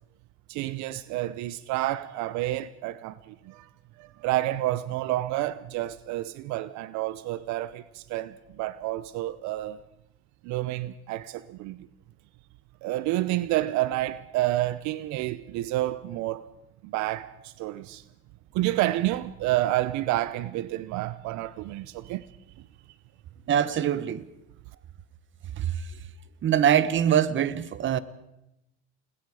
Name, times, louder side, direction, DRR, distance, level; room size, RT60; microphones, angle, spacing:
voice 1, 0.5-3.7 4.0-9.8 10.4-11.9 12.8-16.4 16.8-18.0 18.5-22.3, right 15 dB, 70° right, 0.9 m, -29 dB
voice 2, 23.5-24.3 25.6-25.7 26.4-28.0, right 9 dB, 40° right, 1.2 m, -23 dB
29.5 x 20.5 x 4.9 m
supercardioid pair, 105°, 30 cm